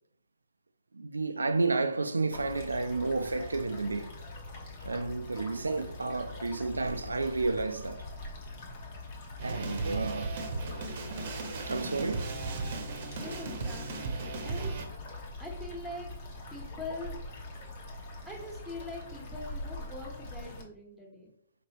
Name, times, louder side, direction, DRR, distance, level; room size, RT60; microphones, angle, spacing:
voice 1, 0.9-4.1 4.8-8.1 9.4-10.3 11.7-12.3, right 3 dB, 90° right, 0.3 m, -31 dB
sound 1, 2.3-20.6, left 2 dB, 45° left, 1.2 m, -43 dB
sound 2, 9.4-14.9, right 3 dB, 50° right, 0.8 m, -36 dB
voice 2, 13.2-14.8 15.4-16.1 16.5-17.2 18.2-21.3, left 2 dB, ahead, 1.3 m, -43 dB
5.0 x 3.0 x 3.0 m
hypercardioid pair, 135°, 0 cm